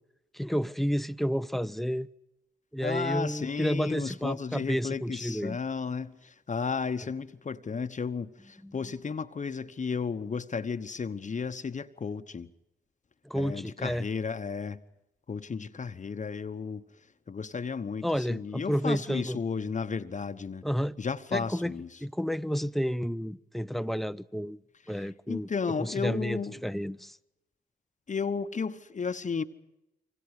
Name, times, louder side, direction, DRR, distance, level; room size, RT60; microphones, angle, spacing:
voice 1, 0.3-2.1 2.7-5.6 8.6-8.8 13.2-14.1 18.0-19.4 20.6-21.0 21.3-21.7 22.0-24.6 24.9-25.5 25.8-27.2, equal, ahead, 0.8 m, -31 dB
voice 2, 2.8-12.5 13.3-14.8 15.3-16.8 17.3-20.6 21.0-21.9 25.0-26.6 28.1-29.4, left 5 dB, 40° left, 1.1 m, -33 dB
27.0 x 24.5 x 5.0 m
hypercardioid pair, 45°, 20 cm